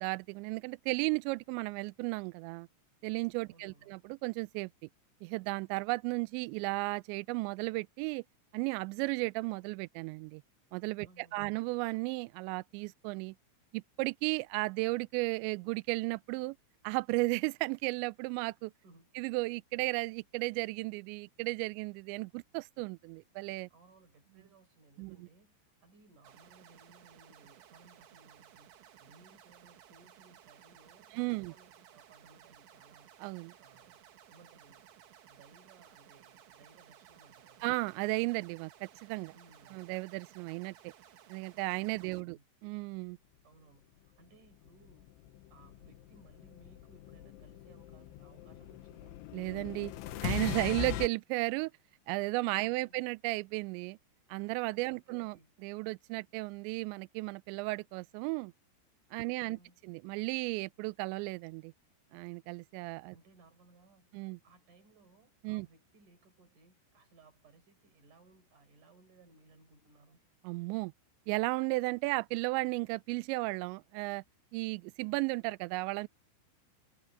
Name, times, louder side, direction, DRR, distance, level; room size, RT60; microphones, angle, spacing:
voice 1, 0.0-2.7 3.0-4.7 5.2-8.2 8.5-10.4 10.7-13.3 13.7-16.6 16.8-18.7 19.2-23.7 25.0-25.2 31.1-31.5 33.2-33.5 37.6-39.3 39.7-40.9 41.3-42.4 42.6-43.2 49.3-49.9 50.2-51.7 52.1-54.0 54.3-55.4 55.6-58.5 59.1-59.6 59.8-61.7 62.1-63.2 64.1-64.4 65.4-65.7 70.4-70.9 71.3-74.2 74.5-76.1, right 25 dB, 90° right, 2.5 m, -34 dB
voice 2, 3.5-3.9 11.0-11.6 18.8-19.1 23.7-33.1 33.6-34.0 34.3-34.9 35.3-37.7 39.3-39.9 42.0-42.4 43.4-45.1 45.5-49.2 52.6-53.0 54.9-55.5 59.2-59.8 63.1-70.2, right 3 dB, 40° right, 5.7 m, -62 dB
sound 1, 26.2-42.2, right 11 dB, 70° right, 4.1 m, -58 dB
sound 2, 44.7-51.1, left 12 dB, 75° left, 3.5 m, -40 dB
omnidirectional pair, 5.7 m